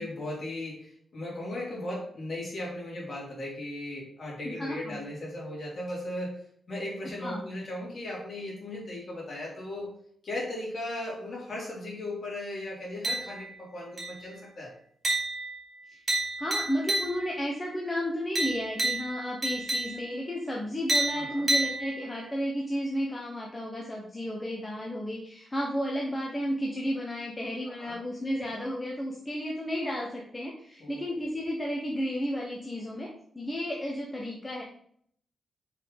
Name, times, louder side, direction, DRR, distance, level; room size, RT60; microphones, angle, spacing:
voice 1, 0.0-6.4 6.7-9.9 10.2-14.7 21.1-21.5 27.7-28.0 30.8-31.0, left 1 dB, 45° left, -4 dB, 2.8 m, -37 dB
voice 2, 4.4-5.0 7.0-7.4 15.9-16.0 16.4-33.1 33.3-34.6, equal, 15° left, -2 dB, 0.9 m, -33 dB
sound 1, 13.0-13.6 14.0-14.4 15.0-17.5 18.3-20.3 20.9-22.3, right 2 dB, 25° right, 1.9 m, -31 dB
5.4 x 4.1 x 5.0 m, 0.63 s
wide cardioid pair, 135°, 0 cm